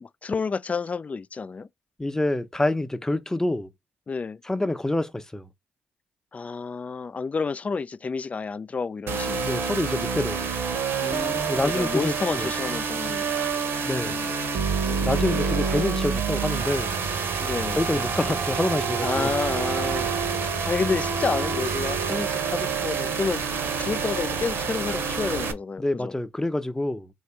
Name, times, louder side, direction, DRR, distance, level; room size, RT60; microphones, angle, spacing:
voice 1, 0.0-1.7 4.1-4.4 6.3-9.6 11.0-13.2 14.0-14.3 14.8-15.4 17.4-17.8 19.0-26.1, left 4 dB, 35° left, 0.4 m, -30 dB
voice 2, 2.0-3.7 4.4-5.5 9.4-10.5 11.5-12.5 13.8-14.3 15.0-16.9 17.8-19.3 25.8-27.1, left 1 dB, 15° left, 0.8 m, -27 dB
sound 1, 9.1-25.5, right 5 dB, 65° right, 0.9 m, -27 dB
3.3 x 2.7 x 4.4 m
hypercardioid pair, 45°, 4 cm